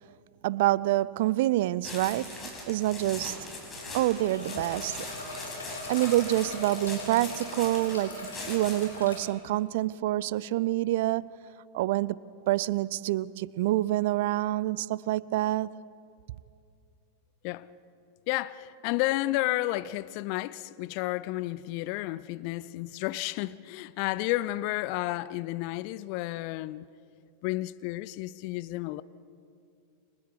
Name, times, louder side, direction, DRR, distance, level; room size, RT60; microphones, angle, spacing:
voice 1, 0.4-3.5 3.9-5.1 5.9-11.3 11.7-12.2 12.5-15.7, right 15 dB, 50° right, 0.5 m, -27 dB
sound 1, 1.8-9.0, left 2 dB, 20° left, 6.0 m, -41 dB
Bowed string instrument, 3.7-7.5 7.8-7.9, equal, 90° right, 2.2 m, -49 dB
sound 2, 4.2-9.2, left 2 dB, 70° left, 5.9 m, -41 dB
voice 2, 18.3-26.9 27.4-29.0, left 17 dB, 45° left, 0.6 m, -31 dB
29.5 x 25.0 x 4.7 m
figure-of-eight pair, 90°, 0 cm